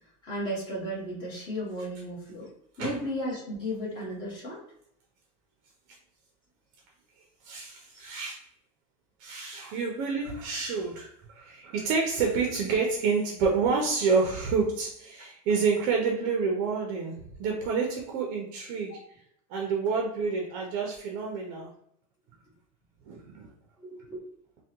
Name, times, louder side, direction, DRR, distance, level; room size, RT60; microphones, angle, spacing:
voice 1, 0.2-2.5 2.8-4.6 18.9-19.0 23.8-24.2, equal, 25° left, -6 dB, 1.4 m, -34 dB
voice 2, 7.4-8.4 9.2-19.0 19.5-21.7 23.1-23.5, right 5 dB, 50° right, 1 dB, 0.5 m, -28 dB
3.4 x 2.2 x 2.8 m, 0.72 s
supercardioid pair, 155°, 17 cm